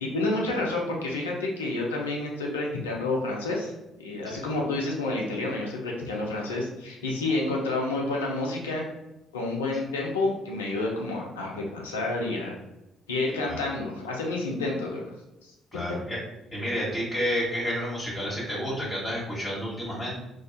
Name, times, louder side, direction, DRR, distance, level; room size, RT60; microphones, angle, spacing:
voice 1, 0.0-3.7 4.0-8.9 9.3-12.5 13.1-15.1 15.4-15.8, left 2 dB, 85° left, -1 dB, 0.4 m, -29 dB
voice 2, 15.7-16.2 16.5-20.2, equal, 25° left, -7 dB, 1.1 m, -30 dB
2.3 x 2.2 x 2.5 m, 0.96 s
hypercardioid pair, 50°, 0 cm